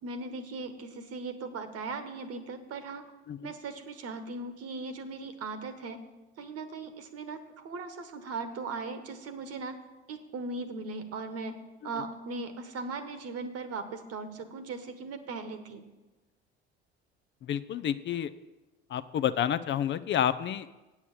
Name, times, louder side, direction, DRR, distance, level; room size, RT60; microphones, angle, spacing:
voice 1, 0.0-3.0 3.4-6.0 6.4-9.8 10.1-11.6 11.8-15.8, right 3 dB, 50° right, 9 dB, 1.3 m, -38 dB
voice 2, 17.4-18.3 18.9-20.7, left 10 dB, 35° left, 12 dB, 0.5 m, -29 dB
8.5 x 7.1 x 7.2 m, 1.1 s
hypercardioid pair, 60°, 31 cm